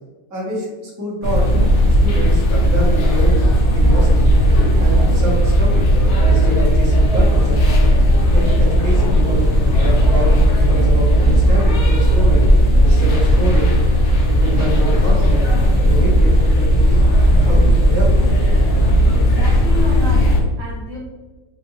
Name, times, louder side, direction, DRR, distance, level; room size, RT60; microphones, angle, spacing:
voice 1, 0.3-1.4 2.0-3.3 3.7-4.3 4.8-5.8 6.3-7.7 8.3-12.4 12.8-13.7 14.2-15.5 15.8-17.0 17.2-18.1, equal, 15° right, -7 dB, 0.8 m, -26 dB
sound 1, 1.2-20.4, equal, 55° left, 0.8 m, -14 dB
voice 2, 19.1-21.0, left 1 dB, 50° right, -6 dB, 1.4 m, -30 dB
4.2 x 2.5 x 3.1 m, 1.2 s
omnidirectional pair, 1.9 m